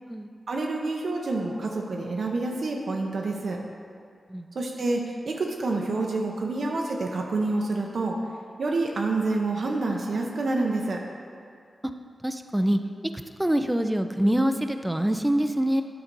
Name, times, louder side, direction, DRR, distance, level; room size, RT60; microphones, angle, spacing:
voice 1, 0.5-3.6 4.5-8.2 8.6-11.0, right 3 dB, 75° right, 0 dB, 0.8 m, -28 dB
voice 2, 12.2-12.8 13.4-15.8, right 1 dB, 10° right, 7 dB, 0.5 m, -24 dB
8.8 x 4.0 x 5.3 m, 2.2 s
cardioid pair, 50°, 0 cm